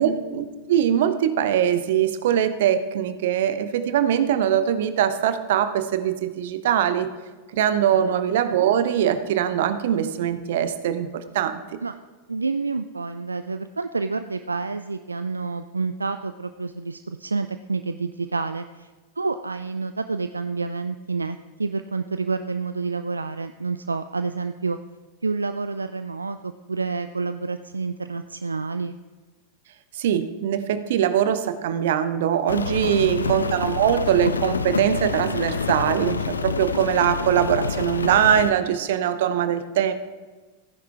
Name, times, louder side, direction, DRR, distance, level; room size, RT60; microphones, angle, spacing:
voice 1, 0.0-7.1 7.5-11.6 29.9-39.9, right 9 dB, 55° right, 11 dB, 0.8 m, -22 dB
voice 2, 7.9-8.2 11.8-11.9 12.3-18.9 19.2-24.8 25.2-29.0 32.9-33.4, right 4 dB, 80° right, 10 dB, 0.3 m, -29 dB
Rain, 32.5-38.5, left 4 dB, 75° left, 0.6 m, -27 dB
15.0 x 9.8 x 3.5 m, 1.3 s
figure-of-eight pair, 90°, 0 cm